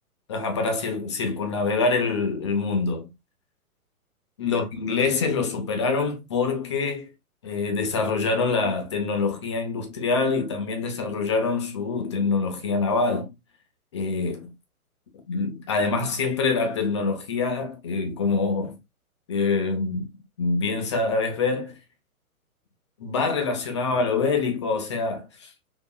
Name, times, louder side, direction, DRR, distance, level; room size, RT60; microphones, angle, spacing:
voice 1, 0.3-3.1 4.4-7.1 7.4-13.3 13.9-14.5 15.3-18.8 19.3-20.1 20.4-21.8 23.0-25.5, left 4 dB, 20° left, 0.4 m, -25 dB
3.7 x 2.8 x 2.2 m
figure-of-eight pair, 120°, 44 cm